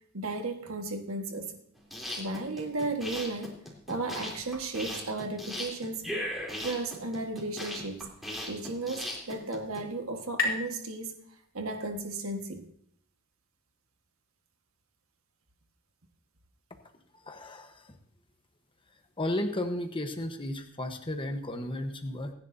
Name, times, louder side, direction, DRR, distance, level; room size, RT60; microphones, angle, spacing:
voice 1, 0.1-1.5 2.2-3.6 3.9-6.1 6.6-8.1 8.5-11.2 11.5-12.6, right 2 dB, 75° right, 4 dB, 1.6 m, -34 dB
sound 1, 1.8-9.8, equal, ahead, 3.3 m, -38 dB
sound 2, 8.9-12.3, left 3 dB, 75° left, 3.5 m, -37 dB
voice 2, 17.2-18.0 19.2-22.3, left 1 dB, 25° left, 5 dB, 1.1 m, -34 dB
26.5 x 10.5 x 2.7 m, 0.65 s
head